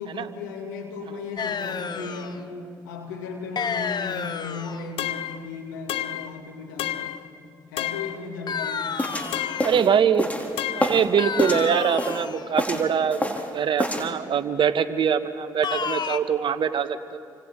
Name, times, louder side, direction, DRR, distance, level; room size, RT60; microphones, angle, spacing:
voice 1, 0.0-2.5 2.8-7.2 7.7-9.2, left 4 dB, 90° left, 2 dB, 2.4 m, -36 dB
sound 1, 1.4-2.4 3.6-4.9 8.5-9.8 11.2-12.5 15.6-16.2, left 6 dB, 45° left, 0.9 m, -30 dB
sound 2, 5.0-5.4 5.9-6.3 6.8-7.2 7.8-8.2 9.3-9.8 10.6-11.0, left 12 dB, 65° left, 0.7 m, -30 dB
sound 3, 9.0-11.1 11.4-12.3 12.6-13.5 13.8-14.1, left 1 dB, 15° left, 2.9 m, -27 dB
voice 2, 9.6-10.3 10.7-17.2, right 7 dB, 55° right, 10 dB, 1.2 m, -23 dB
29.0 x 25.0 x 3.8 m, 2.3 s
hypercardioid pair, 50°, 10 cm